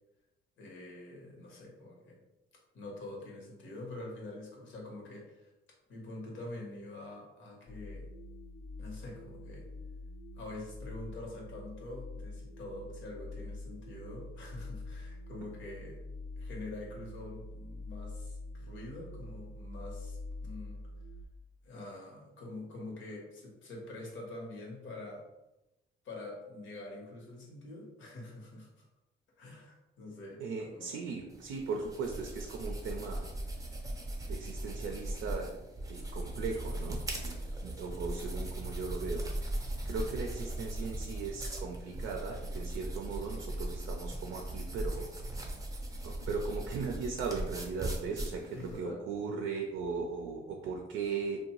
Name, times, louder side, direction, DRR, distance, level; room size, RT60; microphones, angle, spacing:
voice 1, 0.6-2.2 2.7-5.5 5.9-8.1 8.8-9.7 10.3-16.0 16.4-20.8 21.6-25.2 26.0-28.8 29.4-31.0 48.5-49.0, left 2 dB, 75° left, -1 dB, 0.9 m, -46 dB
sound 1, 7.7-21.3, left 2 dB, 45° left, 0.4 m, -45 dB
voice 2, 30.4-33.3 34.3-35.6 35.9-39.3 39.8-45.1 46.0-51.4, right 4 dB, 80° right, 2 dB, 0.4 m, -38 dB
sound 2, 31.3-48.8, right 1 dB, 15° right, 0.6 m, -39 dB
2.6 x 2.2 x 2.9 m, 0.94 s
cardioid pair, 90°, 20 cm